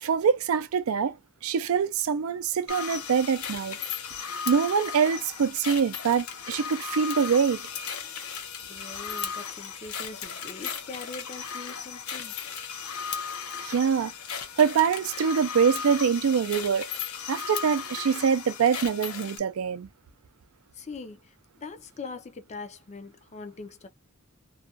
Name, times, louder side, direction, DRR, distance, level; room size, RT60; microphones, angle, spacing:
voice 1, 0.0-1.2 1.4-3.8 4.5-7.6 13.6-14.1 14.6-16.9 17.3-19.9, right 6 dB, 75° right, 0.4 m, -24 dB
sound 1, 2.7-19.4, left 7 dB, 80° left, 0.7 m, -36 dB
voice 2, 8.6-12.4 20.7-23.9, left 3 dB, 30° left, 0.4 m, -42 dB
2.4 x 2.2 x 2.4 m
head